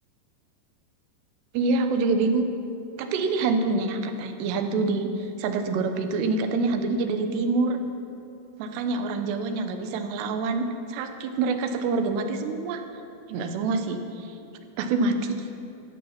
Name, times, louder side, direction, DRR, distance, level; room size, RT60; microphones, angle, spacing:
voice 1, 1.5-2.5 3.0-7.8 8.6-12.8 13.3-14.3 14.8-15.5, right 3 dB, 80° right, 6 dB, 2.9 m, -26 dB
13.0 x 8.3 x 7.3 m, 2.7 s
omnidirectional pair, 4.9 m